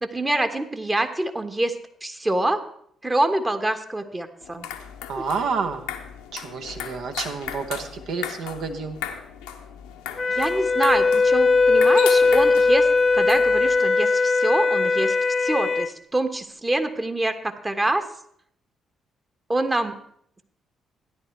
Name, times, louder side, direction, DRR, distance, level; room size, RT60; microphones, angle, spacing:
voice 1, 0.0-2.6 3.0-4.7 5.2-5.3 10.3-18.1 19.5-19.9, right 1 dB, 20° right, 7 dB, 1.3 m, -25 dB
sound 1, 4.4-13.9, left 9 dB, 75° left, 0.8 m, -37 dB
voice 2, 5.1-5.8 6.3-9.0, right 5 dB, 60° right, 5 dB, 1.1 m, -29 dB
Wind instrument woodwind instrument, 10.2-15.9, left 4 dB, 40° left, 0.8 m, -19 dB
13.0 x 10.0 x 4.5 m, 0.68 s
figure-of-eight pair, 40°, 0 cm